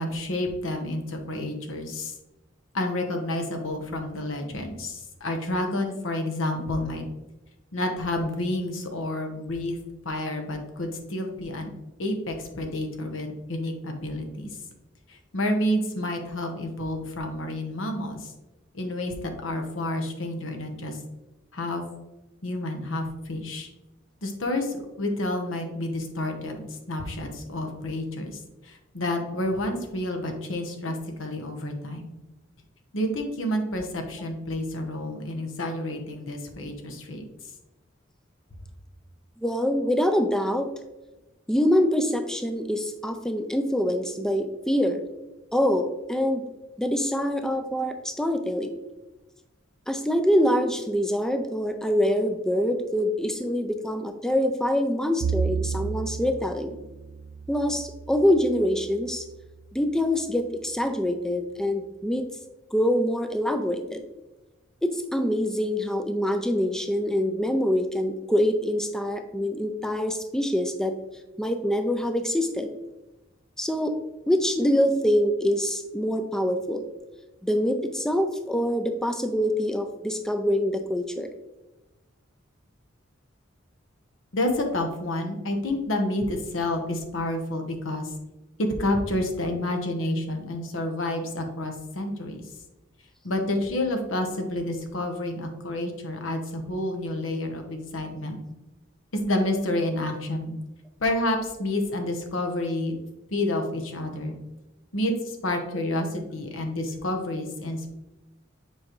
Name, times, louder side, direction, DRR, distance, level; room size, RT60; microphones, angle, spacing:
voice 1, 0.0-2.2 2.7-7.0 7.7-9.8 10.0-11.7 12.0-14.5 15.1-18.3 18.7-21.0 21.5-21.8 22.4-23.7 24.2-32.1 32.9-37.2 84.3-88.1 88.6-92.4 93.2-98.4 99.2-100.6 101.0-102.9 103.3-104.4 104.9-107.9, left 1 dB, 75° left, 4 dB, 1.0 m, -29 dB
voice 2, 39.4-40.7 41.5-45.0 45.5-46.4 46.8-48.7 49.9-56.8 57.5-59.3 59.7-62.3 62.7-64.0 64.8-71.0 71.4-72.7 73.6-74.0 74.3-76.9 77.4-81.3, equal, 5° left, 7 dB, 0.4 m, -25 dB
Bowed string instrument, 55.2-59.6, right 6 dB, 75° right, 0.3 m, -33 dB
7.3 x 4.9 x 3.0 m, 1.0 s
head